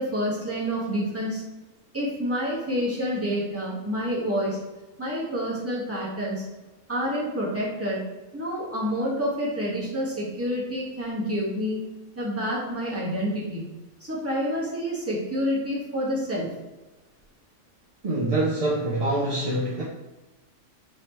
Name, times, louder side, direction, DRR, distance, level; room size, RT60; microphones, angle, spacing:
voice 1, 0.0-1.4 1.9-4.6 5.0-6.4 6.9-8.0 8.3-11.8 12.1-13.6 14.0-16.5, equal, 10° right, -6 dB, 1.2 m, -28 dB
voice 2, 18.0-19.8, right 2 dB, 45° right, -5 dB, 0.5 m, -25 dB
4.9 x 3.0 x 3.0 m, 1.1 s
omnidirectional pair, 1.3 m